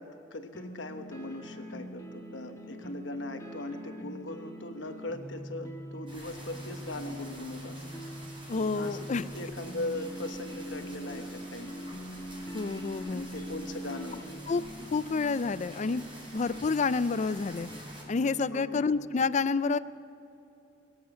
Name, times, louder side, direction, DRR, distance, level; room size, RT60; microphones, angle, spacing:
voice 1, 0.0-7.8 8.7-11.7 13.1-14.4 18.5-18.8, left 2 dB, 75° left, 7 dB, 1.2 m, -39 dB
sound 1, 0.5-18.8, equal, 15° left, 1.4 m, -43 dB
sound 2, 6.1-18.0, right 1 dB, 30° right, 4.9 m, -49 dB
voice 2, 8.5-9.2 12.5-13.2 14.5-14.6 14.9-16.0 16.3-17.7 18.1-19.8, left 4 dB, 40° left, 15 dB, 0.4 m, -28 dB
22.5 x 8.0 x 7.9 m, 2.8 s
head